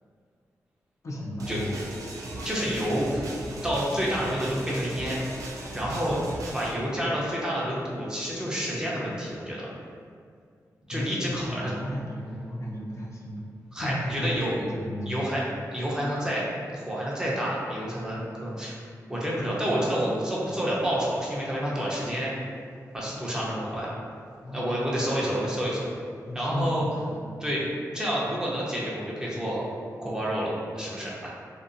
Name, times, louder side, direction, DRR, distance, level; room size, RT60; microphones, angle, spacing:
voice 1, 1.0-1.8 2.2-2.5 5.8-6.0 10.9-13.5 13.8-15.2 24.4-24.7 26.3-27.6, equal, 55° left, -4 dB, 0.4 m, -35 dB
sound 1, 1.4-6.7, right 1 dB, 65° right, 0.4 m, -37 dB
voice 2, 2.4-3.3 3.6-5.2 5.7-6.2 6.5-9.7 10.9-11.7 13.7-14.5 15.1-15.4 15.7-18.7 19.1-22.3 22.9-23.9 24.5-25.9 26.3-26.9 27.4-27.6 27.9-29.6 30.0-31.3, equal, 10° right, -6 dB, 0.6 m, -29 dB
2.6 x 2.3 x 2.5 m, 2.2 s
wide cardioid pair, 90°, 6 cm